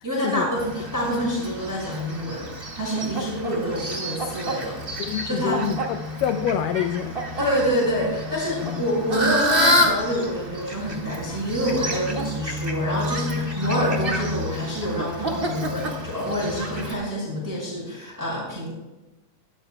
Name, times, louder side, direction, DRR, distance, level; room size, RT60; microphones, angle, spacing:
voice 1, 0.0-2.4 2.7-5.6 7.4-18.7, equal, 5° right, -5 dB, 5.3 m, -27 dB
Fowl, 0.6-16.9, equal, 30° right, 1.0 m, -28 dB
voice 2, 5.0-7.2 8.6-8.9, left 9 dB, 80° left, 8 dB, 2.1 m, -27 dB
21.0 x 13.5 x 2.3 m, 1.1 s
omnidirectional pair, 4.2 m